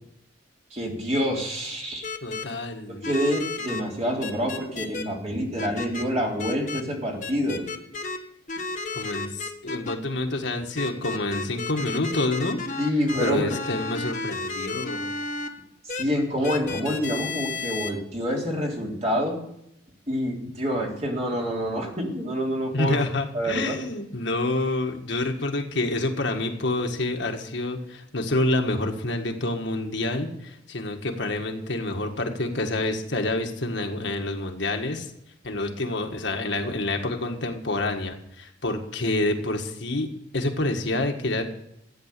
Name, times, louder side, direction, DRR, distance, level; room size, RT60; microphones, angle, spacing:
voice 1, 0.7-2.1 2.9-7.7 12.8-13.6 15.9-19.4 20.1-23.0 23.3-23.8, equal, 35° right, -1 dB, 3.4 m, -27 dB
sound 1, 2.0-2.4 3.0-3.8 4.2-5.0 5.6-6.0 6.4-6.8 7.2-8.2 8.5-9.9 10.8-15.5 15.9-16.0 16.4-17.9, left 3 dB, 40° left, 1.2 m, -32 dB
voice 2, 2.2-3.1 8.9-12.6 13.2-15.1 22.7-35.1 35.4-41.4, left 2 dB, 65° left, 4 dB, 1.7 m, -28 dB
14.5 x 9.2 x 6.8 m, 0.78 s
head